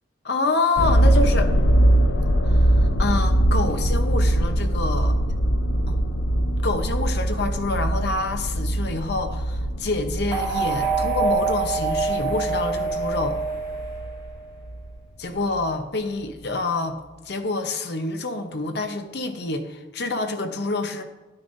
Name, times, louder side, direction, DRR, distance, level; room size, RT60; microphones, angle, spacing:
voice 1, 0.2-1.5 2.4-5.2 5.9-6.0 6.6-13.4 15.2-17.0 17.2-21.0, left 3 dB, 60° left, 7 dB, 0.8 m, -27 dB
sound 1, 0.8-14.9 15.5-15.6, right 1 dB, 90° left, 0.7 m, -22 dB
sound 2, 10.3-14.5, right 4 dB, 30° left, 2.9 m, -26 dB
10.0 x 9.5 x 2.6 m, 1.2 s
head